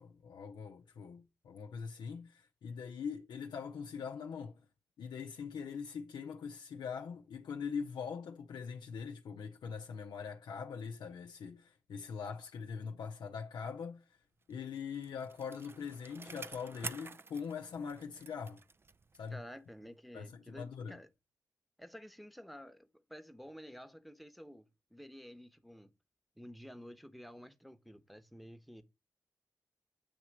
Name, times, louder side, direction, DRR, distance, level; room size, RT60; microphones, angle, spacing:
voice 1, 0.0-4.7 5.0-14.2 14.5-18.6 19.2-19.4 20.1-21.0, left 6 dB, 85° left, 0.5 m, -42 dB
Bicycle, 14.5-19.4 19.8-19.9, right 4 dB, 30° right, 0.4 m, -49 dB
voice 2, 19.3-21.1 21.8-25.9 26.4-28.8, equal, ahead, 1.0 m, -51 dB
8.5 x 2.9 x 6.0 m
cardioid pair, 50°, 7 cm